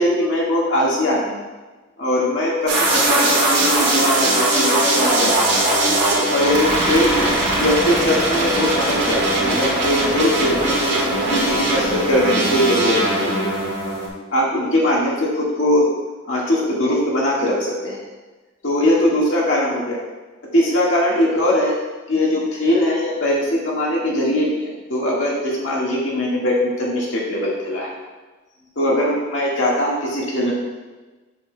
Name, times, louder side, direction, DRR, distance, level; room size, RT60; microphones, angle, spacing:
voice 1, 0.0-1.4 2.0-5.8 6.3-7.3 7.6-13.4 14.3-15.9 16.3-18.0 18.6-20.0 20.5-21.7 22.1-27.9 28.7-30.5, left 1 dB, 70° left, -4 dB, 1.7 m, -21 dB
sound 1, 2.7-14.1, right 1 dB, 65° right, 2.0 m, -20 dB
7.4 x 6.7 x 2.2 m, 1.2 s
head